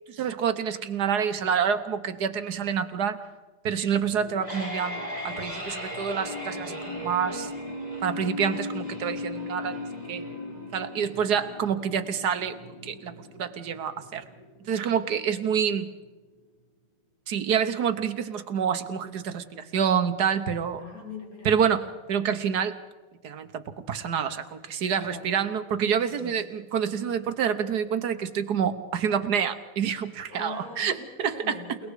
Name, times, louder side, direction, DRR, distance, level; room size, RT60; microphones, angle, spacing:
voice 1, 0.1-3.2 3.6-7.5 8.0-9.8 10.1-10.3 10.7-12.5 12.8-14.2 14.7-15.9 17.3-20.8 21.4-22.8 23.2-31.6, right 7 dB, 55° right, 9 dB, 1.4 m, -27 dB
sound 1, 4.1-15.1, left 2 dB, 15° left, 3.8 m, -37 dB
voice 2, 20.8-21.5 25.1-25.3 26.0-26.5 30.3-31.9, left 3 dB, 40° left, -1 dB, 4.7 m, -41 dB
29.0 x 19.0 x 4.9 m, 1.2 s
omnidirectional pair, 2.4 m